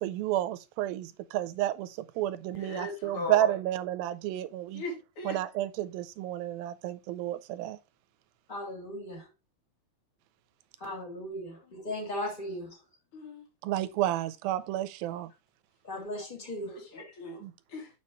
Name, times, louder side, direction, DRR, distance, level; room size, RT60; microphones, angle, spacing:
voice 1, 0.0-1.9 2.2-4.8 5.3-7.8 13.6-15.3 17.4-17.5, right 13 dB, 80° right, 2.4 m, -31 dB
voice 2, 2.6-3.5 4.7-5.4 13.1-13.4 16.7-17.4 17.7-17.9, left 3 dB, 40° left, 2.8 m, -38 dB
voice 3, 8.5-9.3 10.8-12.7 15.8-17.1, left 1 dB, 15° left, 2.4 m, -37 dB
7.3 x 5.6 x 3.0 m
omnidirectional pair, 4.3 m